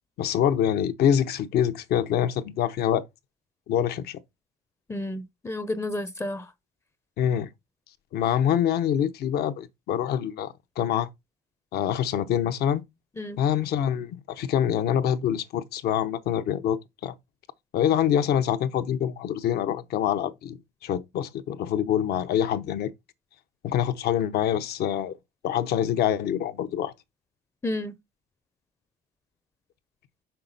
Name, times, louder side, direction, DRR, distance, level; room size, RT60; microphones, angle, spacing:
voice 1, 0.2-3.0 3.7-4.2 7.2-7.5 8.1-11.1 11.7-12.8 13.4-17.1 17.7-20.6 20.8-22.9 23.6-25.1 25.4-26.9, left 9 dB, 70° left, 0.9 m, -25 dB
voice 2, 4.9-6.5 13.2-13.4 27.6-27.9, left 1 dB, 15° left, 0.6 m, -31 dB
6.2 x 5.7 x 4.0 m
cardioid pair, 110°, 17 cm